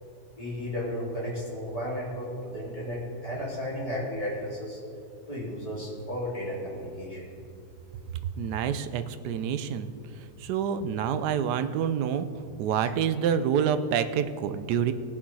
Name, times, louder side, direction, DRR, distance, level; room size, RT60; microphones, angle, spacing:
voice 1, 0.4-4.8 5.3-7.3, equal, 20° left, -7 dB, 3.8 m, -34 dB
voice 2, 8.4-9.9 10.4-12.3 12.6-14.9, right 8 dB, 75° right, 11 dB, 1.2 m, -27 dB
19.0 x 7.3 x 4.7 m, 2.4 s
omnidirectional pair, 1.8 m